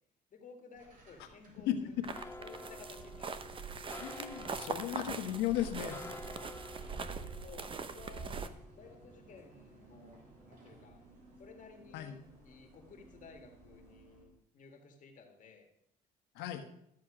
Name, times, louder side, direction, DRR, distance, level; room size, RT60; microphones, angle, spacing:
voice 1, 0.3-3.7 5.3-5.4 6.8-8.4 8.8-11.0 11.4-15.7, left 5 dB, 50° left, 4 dB, 1.9 m, -56 dB
sound 1, 0.7-14.2, right 2 dB, 50° right, 3.0 m, -59 dB
sound 2, 2.0-8.5, right 5 dB, 30° right, 0.8 m, -42 dB
sound 3, 2.1-11.4 11.7-12.8 13.1-13.5 13.8-13.9, left 2 dB, 15° left, 0.6 m, -52 dB
voice 2, 4.0-6.0 11.9-12.2 16.3-16.7, left 12 dB, 90° left, 5 dB, 1.4 m, -35 dB
13.0 x 7.4 x 5.0 m, 0.75 s
cardioid pair, 110°, 17 cm